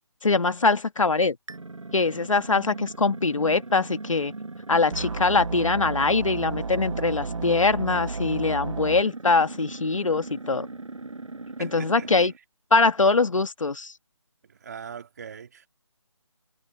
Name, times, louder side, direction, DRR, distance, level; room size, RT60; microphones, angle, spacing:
voice 1, 0.2-1.4 1.9-4.3 4.7-10.7 11.6-12.3 12.7-13.9, left 3 dB, 85° left, 1.8 m, -23 dB
sound 1, 1.5-12.4, right 3 dB, 90° right, 6.0 m, -39 dB
sound 2, 4.9-9.0, right 4 dB, 70° right, 0.9 m, -32 dB
voice 2, 11.6-12.3 14.4-15.7, right 7 dB, 30° right, 2.3 m, -42 dB
figure-of-eight pair, 170°, 16 cm